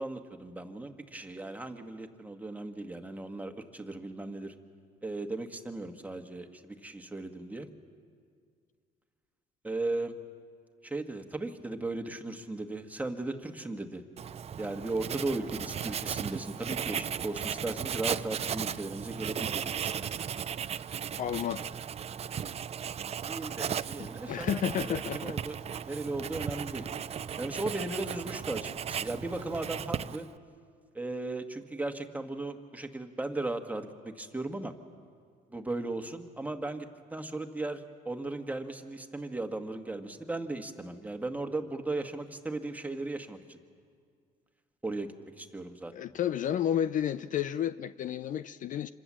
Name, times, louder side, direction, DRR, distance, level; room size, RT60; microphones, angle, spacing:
voice 1, 0.0-4.5 5.0-7.7 9.6-10.1 10.8-14.0 14.6-20.3 23.3-25.6 25.9-26.9 27.4-30.3 31.0-34.7 35.5-43.6 44.8-45.9, right 2 dB, 10° right, 5 dB, 1.6 m, -37 dB
Writing, 14.2-30.4, right 8 dB, 40° right, 0.5 m, -36 dB
voice 2, 21.2-21.6 24.0-25.4 45.9-48.9, left 10 dB, 50° left, 14 dB, 0.5 m, -31 dB
26.5 x 21.0 x 7.6 m, 2.1 s
cardioid pair, 110°, 17 cm